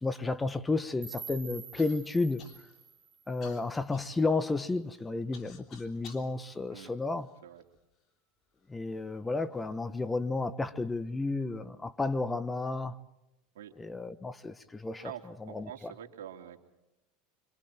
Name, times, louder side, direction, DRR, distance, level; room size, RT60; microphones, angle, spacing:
voice 1, 0.0-2.4 3.3-7.3 8.7-13.0 13.8-15.1 15.5-15.9, left 3 dB, 15° left, 1.1 m, -32 dB
sound 1, 1.0-4.0, right 7 dB, 25° right, 2.8 m, -48 dB
Human voice / Cough, 1.8-2.0 2.4-2.9 3.4-6.3 7.0-7.8 8.6-8.7 9.4-9.7, left 6 dB, 45° left, 3.4 m, -53 dB
voice 2, 15.0-16.6, right 10 dB, 90° right, 2.8 m, -46 dB
26.5 x 26.0 x 4.5 m
supercardioid pair, 110°, 0 cm